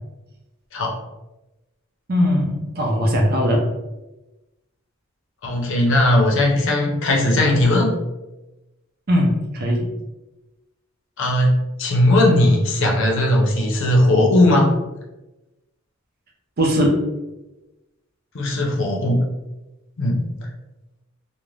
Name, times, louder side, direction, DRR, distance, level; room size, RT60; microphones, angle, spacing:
voice 1, 2.1-3.6 9.1-9.9 16.6-17.0, equal, 45° right, 0 dB, 0.6 m, -19 dB
voice 2, 5.4-7.9 11.2-11.5 11.8-14.7 18.3-19.2 20.0-20.3, left 1 dB, 65° left, 0 dB, 0.6 m, -18 dB
2.5 x 2.1 x 3.1 m, 1.0 s
head